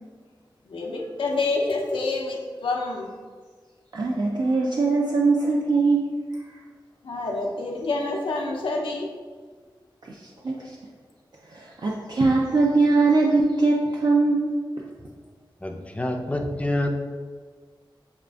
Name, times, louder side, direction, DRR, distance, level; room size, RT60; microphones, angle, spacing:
voice 1, 0.7-3.1 7.0-9.1, left 3 dB, 85° left, 0 dB, 0.5 m, -27 dB
voice 2, 3.9-6.2 10.1-10.2 10.4-10.6 11.5-14.5, right 3 dB, 55° right, -2 dB, 0.4 m, -21 dB
voice 3, 15.6-16.9, left 1 dB, 15° left, 3 dB, 0.4 m, -27 dB
6.2 x 2.4 x 2.2 m, 1.5 s
wide cardioid pair, 75°, 9 cm